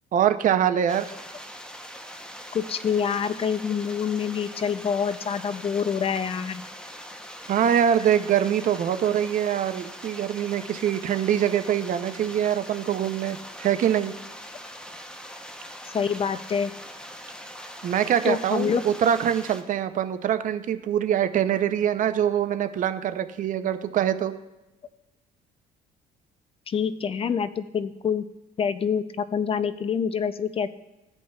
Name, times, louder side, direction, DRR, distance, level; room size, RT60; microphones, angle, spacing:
voice 1, 0.1-1.1 7.5-14.1 17.8-24.3, right 9 dB, 50° right, 11 dB, 0.5 m, -24 dB
sound 1, 0.9-19.6, equal, 5° left, 0.7 m, -42 dB
voice 2, 2.5-6.6 15.9-16.7 18.3-18.8 26.7-28.2 28.6-30.7, left 7 dB, 35° left, 13 dB, 0.4 m, -26 dB
15.5 x 5.3 x 2.3 m, 1.0 s
cardioid pair, 110°, 17 cm